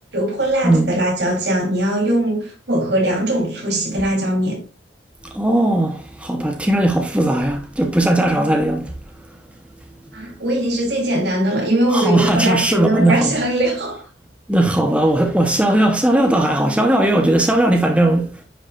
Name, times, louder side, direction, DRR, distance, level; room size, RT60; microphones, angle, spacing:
voice 1, 0.1-4.6 10.1-14.0, right 1 dB, 65° right, 3.6 m, -20 dB
voice 2, 5.2-8.9 11.9-13.4 14.5-18.3, right 1 dB, 5° right, 1.1 m, -17 dB
10.0 x 5.9 x 2.5 m
head